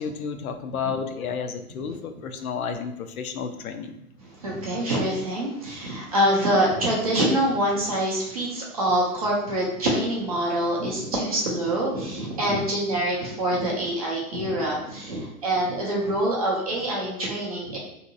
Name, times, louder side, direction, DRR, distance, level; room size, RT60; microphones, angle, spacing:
voice 1, 0.0-4.0 12.5-12.7, left 6 dB, 65° left, 6 dB, 0.6 m, -32 dB
voice 2, 4.4-17.8, right 1 dB, 25° right, -3 dB, 0.4 m, -25 dB
3.8 x 2.8 x 2.6 m, 0.81 s
hypercardioid pair, 140°, 46 cm